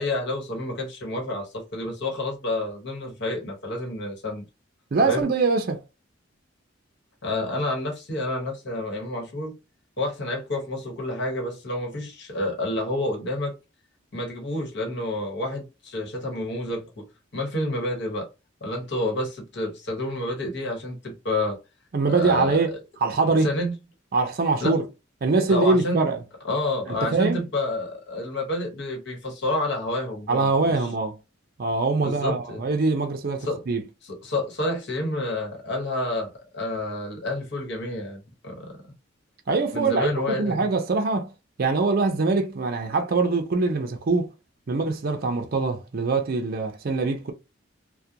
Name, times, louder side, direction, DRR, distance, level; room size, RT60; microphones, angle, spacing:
voice 1, 0.0-4.5 5.1-5.3 7.2-9.6 10.0-13.5 14.1-17.1 17.3-18.3 18.6-21.6 22.0-22.8 23.4-23.8 24.6-24.8 25.5-26.0 26.4-30.9 32.0-32.7 33.4-33.6 34.0-38.9 39.7-40.7, left 1 dB, 65° left, 1.1 m, -29 dB
voice 2, 4.9-5.8 21.9-22.7 23.0-23.5 24.1-24.9 25.2-26.2 26.9-27.4 30.3-31.2 31.6-33.8 39.5-41.3 41.6-44.3 44.7-47.3, right 3 dB, 50° right, 0.5 m, -23 dB
2.4 x 2.2 x 2.7 m
head